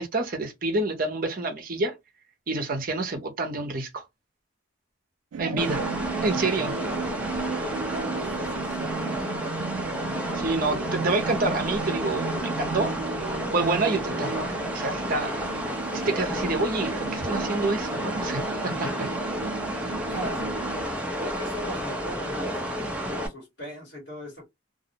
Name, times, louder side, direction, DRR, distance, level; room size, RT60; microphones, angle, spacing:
voice 1, 0.0-1.9 2.5-4.0 5.4-5.8 6.2-6.7 10.3-12.9 13.5-18.6 19.8-19.9, right 2 dB, 45° right, 0.6 m, -28 dB
sound 1, 5.3-20.9, right 6 dB, 90° right, 0.3 m, -35 dB
voice 2, 5.4-5.9 7.9-9.4 18.7-19.1 20.0-20.5 21.2-24.5, right 1 dB, 60° left, 1.3 m, -38 dB
sound 2, 5.6-23.3, equal, 5° right, 0.4 m, -31 dB
2.4 x 2.0 x 2.7 m
head